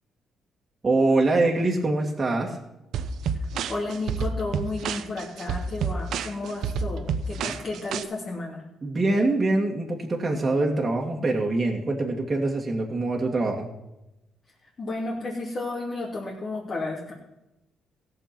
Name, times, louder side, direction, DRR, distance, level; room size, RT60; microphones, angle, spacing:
voice 1, 0.8-2.6 7.5-7.6 8.8-13.7, right 2 dB, 25° right, -2 dB, 2.0 m, -24 dB
sound 1, 2.9-8.0, right 5 dB, 75° right, 0.7 m, -29 dB
voice 2, 3.7-8.6 14.8-17.1, left 2 dB, 45° left, -5 dB, 2.9 m, -32 dB
16.0 x 6.8 x 6.0 m, 0.93 s
cardioid pair, 90°, 0 cm